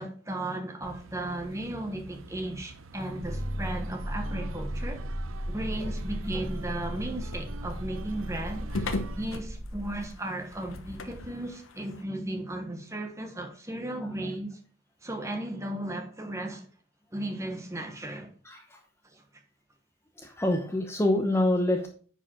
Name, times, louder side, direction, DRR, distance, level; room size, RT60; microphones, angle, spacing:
voice 1, 0.0-5.0 5.5-14.6 15.0-16.7 17.1-18.3 19.1-19.2, right 1 dB, 15° right, 1.2 m, -35 dB
sound 1, 0.8-9.3, right 4 dB, 75° right, 0.6 m, -46 dB
sound 2, 3.2-10.1, equal, 40° right, 3.1 m, -35 dB
sound 3, 5.8-12.0, left 2 dB, 80° left, 1.0 m, -40 dB
voice 2, 18.4-18.8 20.2-21.9, left 1 dB, 15° left, 0.9 m, -27 dB
9.6 x 4.9 x 4.5 m
head